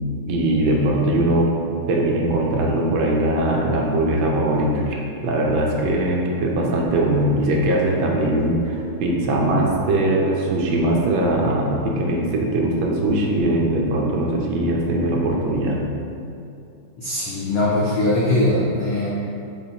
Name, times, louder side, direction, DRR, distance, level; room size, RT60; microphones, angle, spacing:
voice 1, 0.3-1.5 1.9-15.8, right 1 dB, 75° right, -1 dB, 1.3 m, -21 dB
sound 1, 6.4-13.4, right 2 dB, 35° right, 0.7 m, -37 dB
voice 2, 17.0-19.1, left 1 dB, 80° left, -7 dB, 0.7 m, -21 dB
6.5 x 2.4 x 2.8 m, 2.6 s
omnidirectional pair, 2.3 m